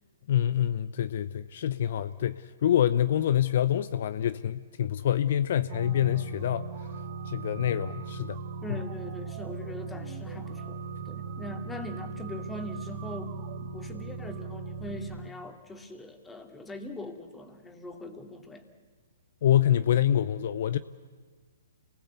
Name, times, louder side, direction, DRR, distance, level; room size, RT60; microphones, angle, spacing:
voice 1, 0.3-6.7 7.2-8.4 8.7-8.8 19.4-20.8, left 10 dB, 55° left, 14 dB, 0.7 m, -26 dB
sound 1, 5.7-15.3, right 4 dB, 45° right, 2.5 m, -38 dB
voice 2, 8.6-10.8 11.1-13.4 13.7-18.6, left 1 dB, 10° left, 5 dB, 2.4 m, -41 dB
28.0 x 20.0 x 8.2 m, 1.5 s
hypercardioid pair, 130°, 0 cm